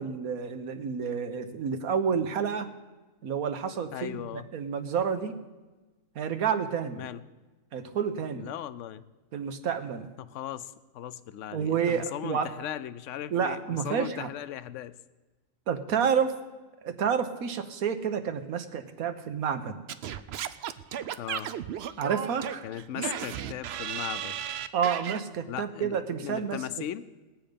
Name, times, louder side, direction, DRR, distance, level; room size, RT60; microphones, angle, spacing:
voice 1, 0.0-2.7 3.2-5.4 6.1-7.0 7.7-8.5 9.3-10.1 11.5-12.5 13.3-14.3 15.7-16.3 16.8-19.8 22.0-22.6 23.0-23.1 24.7-26.6, right 7 dB, 85° right, 8 dB, 1.4 m, -29 dB
voice 2, 3.9-4.5 6.9-7.2 8.4-9.0 10.2-15.0 21.2-21.5 22.6-24.4 25.5-27.0, left 11 dB, 70° left, 15 dB, 0.9 m, -38 dB
Singing / Scratching (performance technique), 19.9-25.2, right 9 dB, 65° right, 0.7 m, -35 dB
20.0 x 8.0 x 5.2 m, 1.2 s
omnidirectional pair, 1.5 m